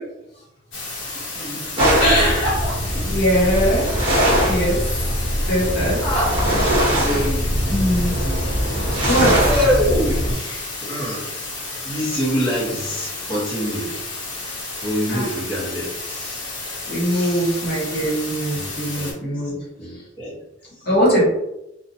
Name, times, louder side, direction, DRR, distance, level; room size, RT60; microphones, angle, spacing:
sound 1, 0.7-19.1, left 2 dB, 75° left, 1.0 m, -32 dB
voice 1, 1.1-3.0 4.1-4.3 6.0-6.5 7.0-7.6 9.4-11.3 11.8-14.1 14.8-16.4 17.1-17.6 18.5-18.7 19.0-19.1 19.8-20.4, equal, 25° left, -9 dB, 1.0 m, -25 dB
sound 2, 1.8-10.3, equal, 30° right, 0.8 m, -21 dB
voice 2, 2.0-2.5 3.0-3.9 4.4-5.1 5.5-6.0 7.7-8.2 9.0-9.4 15.1-15.3 16.9-20.0 20.8-21.3, equal, 55° left, -5 dB, 1.2 m, -21 dB
2.7 x 2.3 x 2.7 m, 0.90 s
head